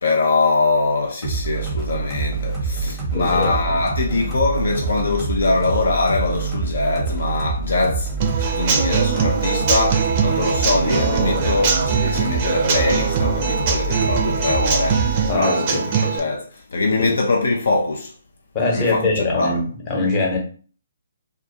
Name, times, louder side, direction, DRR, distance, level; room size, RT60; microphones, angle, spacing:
voice 1, 0.0-8.1 8.4-18.1 18.7-19.6, left 3 dB, 70° left, 0.4 m, -22 dB
sound 1, 1.2-15.3, right 4 dB, ahead, 0.8 m, -26 dB
voice 2, 3.1-3.5 15.3-15.8 17.0-17.1 18.5-20.4, left 2 dB, 30° left, 0.9 m, -22 dB
Human voice / Acoustic guitar / Drum, 8.2-16.2, right 6 dB, 35° right, 0.4 m, -22 dB
2.3 x 2.2 x 2.7 m
figure-of-eight pair, 135°, 0 cm